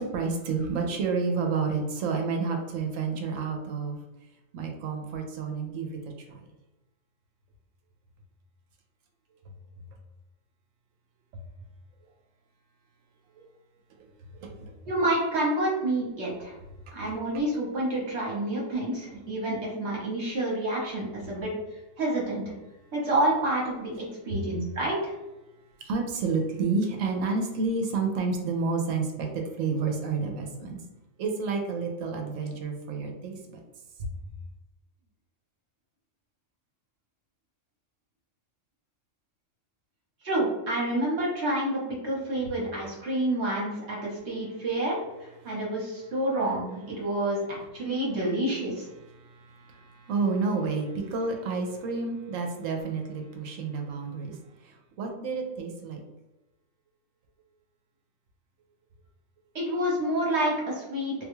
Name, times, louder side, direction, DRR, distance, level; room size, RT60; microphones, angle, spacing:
voice 1, 0.0-4.0 4.5-6.0 6.3-6.4 13.4-13.5 14.3-14.7 24.3-24.4 25.8-30.8 31.2-33.6 34.0-34.1 45.4-45.5 49.1-56.0, right 4 dB, 80° right, 2 dB, 1.0 m, -30 dB
voice 2, 14.9-16.5 16.9-21.5 22.0-22.4 22.9-25.1 40.2-48.9 59.5-61.1, right 1 dB, 60° right, -4 dB, 1.2 m, -28 dB
3.6 x 2.3 x 3.0 m, 1.0 s
omnidirectional pair, 1.3 m